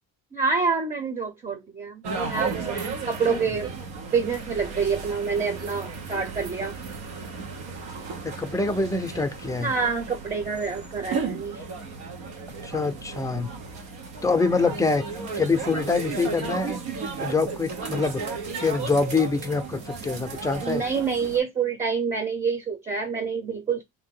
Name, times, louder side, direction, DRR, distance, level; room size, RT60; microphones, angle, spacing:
voice 1, 0.3-3.7 4.1-6.7 9.6-11.6 20.6-23.8, right 5 dB, 20° right, 0.7 m, -27 dB
sound 1, 2.0-21.4, right 4 dB, 90° right, 1.1 m, -34 dB
voice 2, 8.2-9.7 12.6-13.5 14.2-15.0 15.3-16.8 17.2-18.2 18.6-20.8, left 3 dB, 10° left, 0.5 m, -25 dB
3.0 x 2.7 x 3.7 m
cardioid pair, 130°, 37 cm